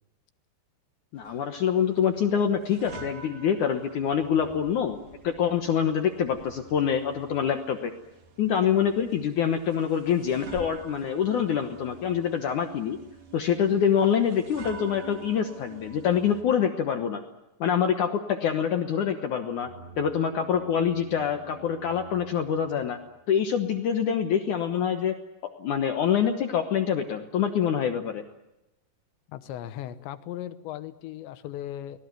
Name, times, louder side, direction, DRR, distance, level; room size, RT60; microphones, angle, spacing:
voice 1, 1.1-5.0 5.2-7.9 8.4-13.0 13.3-17.2 17.6-19.7 20.0-23.0 23.3-25.2 25.4-28.2, left 8 dB, 70° left, 6 dB, 2.0 m, -25 dB
sound 1, 1.2-16.4, right 5 dB, 50° right, 3.9 m, -47 dB
sound 2, 19.6-23.3, right 2 dB, 70° right, 6.1 m, -49 dB
voice 2, 29.3-32.0, left 12 dB, 90° left, 11 dB, 3.4 m, -37 dB
24.5 x 19.0 x 9.5 m, 0.94 s
omnidirectional pair, 5.0 m